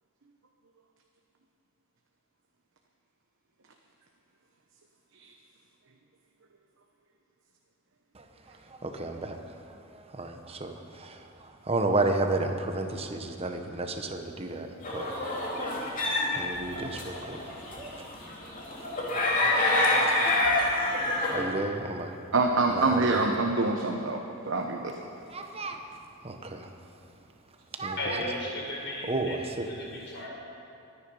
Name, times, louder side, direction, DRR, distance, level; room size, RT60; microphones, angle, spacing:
voice 1, 8.1-9.4 9.9-16.0 16.3-17.4 17.7-18.1 20.1-20.3 21.3-22.2 22.7-23.0 25.3-25.9 26.2-26.7 27.8-28.2 29.1-29.7, right 2 dB, 30° right, 5 dB, 1.1 m, -33 dB
sound 1, 14.8-21.4, left 2 dB, 40° left, 2.8 m, -27 dB
voice 2, 22.3-24.9, right 3 dB, 60° right, 2 dB, 1.0 m, -26 dB
voice 3, 28.0-29.4 29.6-30.3, left 1 dB, 55° left, -3 dB, 4.5 m, -35 dB
23.0 x 9.9 x 5.5 m, 2.8 s
head